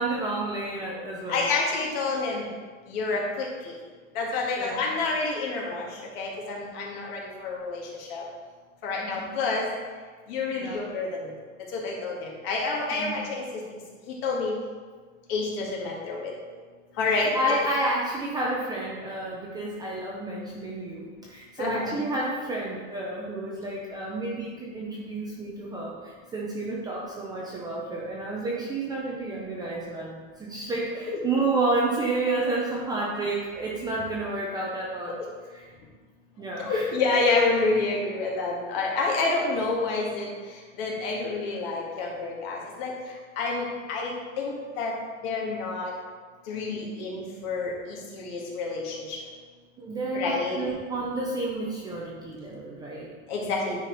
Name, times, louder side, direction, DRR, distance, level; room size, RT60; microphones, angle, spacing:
voice 1, 0.0-1.5 4.6-4.8 9.2-9.3 10.6-10.8 12.9-13.2 17.1-35.2 35.5-35.7 36.4-36.9 49.8-53.1, right 2 dB, 10° right, -4 dB, 0.5 m, -30 dB
voice 2, 1.3-2.5 2.9-3.8 4.2-5.9 6.2-7.8 8.1-8.2 8.8-9.6 10.3-11.3 11.7-13.4 14.1-14.5 15.3-16.3 17.0-17.3 21.6-22.0 31.1-31.2 35.1-35.2 36.6-40.3 40.8-42.9 43.4-44.9 45.2-45.9 46.5-49.2 50.1-50.6 53.3-53.8, left 3 dB, 50° left, -2 dB, 1.9 m, -28 dB
9.7 x 5.0 x 4.0 m, 1.5 s
supercardioid pair, 165°, 39 cm